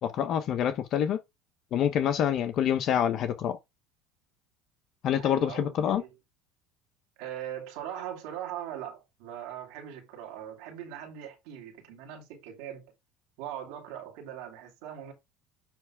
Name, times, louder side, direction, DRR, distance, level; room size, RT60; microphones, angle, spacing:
voice 1, 0.0-1.2 1.7-3.6 5.0-6.0, left 9 dB, 50° left, 1.0 m, -26 dB
voice 2, 5.1-6.1 7.2-12.9 13.4-15.1, right 10 dB, 80° right, 2.5 m, -40 dB
9.5 x 3.4 x 4.8 m
supercardioid pair, 110°, 0 cm